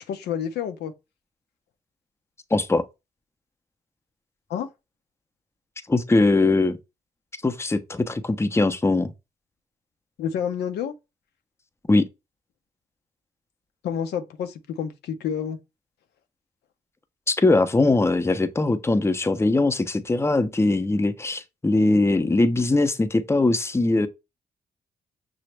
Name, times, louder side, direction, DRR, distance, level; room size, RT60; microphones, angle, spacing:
voice 1, 0.1-0.9 4.5-4.7 10.2-10.9 13.8-15.6, left 8 dB, 80° left, 0.5 m, -29 dB
voice 2, 2.5-2.8 5.9-6.8 7.4-9.1 11.9-12.0 17.3-24.1, left 2 dB, 15° left, 0.5 m, -21 dB
5.8 x 2.0 x 3.2 m
supercardioid pair, 50°, 17 cm